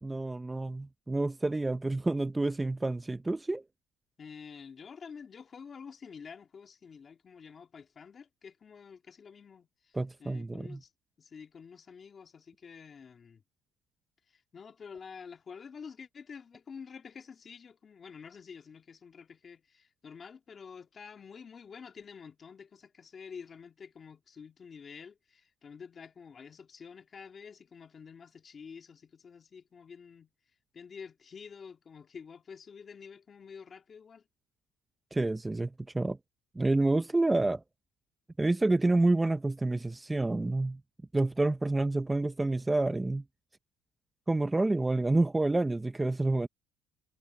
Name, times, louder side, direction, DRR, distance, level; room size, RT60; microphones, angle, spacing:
voice 1, 0.0-3.6 9.9-10.8 35.1-36.2 36.6-37.6 38.4-40.8 41.1-43.2 44.3-46.5, right 2 dB, 10° right, 0.6 m, -28 dB
voice 2, 4.2-10.9 11.2-13.4 14.3-30.3 30.7-34.2, left 6 dB, 35° left, 1.9 m, -49 dB
cardioid pair, 120°, 0 cm